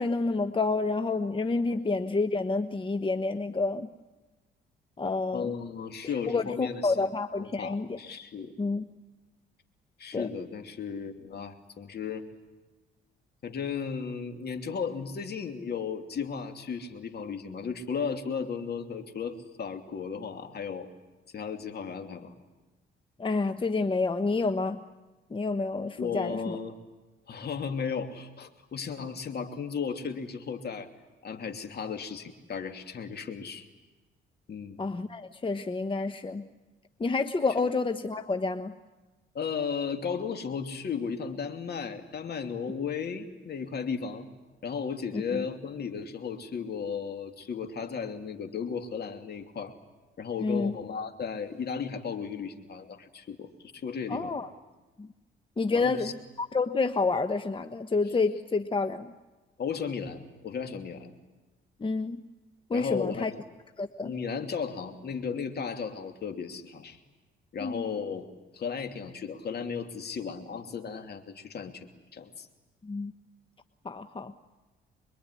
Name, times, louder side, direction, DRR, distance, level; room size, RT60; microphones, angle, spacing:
voice 1, 0.0-3.9 5.0-5.5 6.3-8.0 8.6-8.9 10.1-10.3 23.2-24.8 25.3-26.6 34.8-36.5 37.0-38.8 45.1-45.4 50.4-50.8 54.1-54.5 55.0-55.1 55.6-59.1 61.8-62.2 62.7-63.3 63.8-64.1 67.6-67.8 72.8-73.1 73.8-74.3, left 3 dB, 25° left, 9 dB, 1.2 m, -29 dB
voice 2, 5.3-7.1 7.4-8.5 10.0-12.2 13.4-20.9 21.3-22.3 26.0-26.8 27.3-30.9 31.2-33.7 34.5-34.8 39.3-44.3 44.6-49.7 50.2-54.4 55.7-56.1 59.6-61.1 62.7-63.4 64.0-67.0 67.5-68.3 68.5-72.5, left 6 dB, 55° left, 6 dB, 2.9 m, -35 dB
26.0 x 22.5 x 9.9 m, 1.2 s
cardioid pair, 90°, 20 cm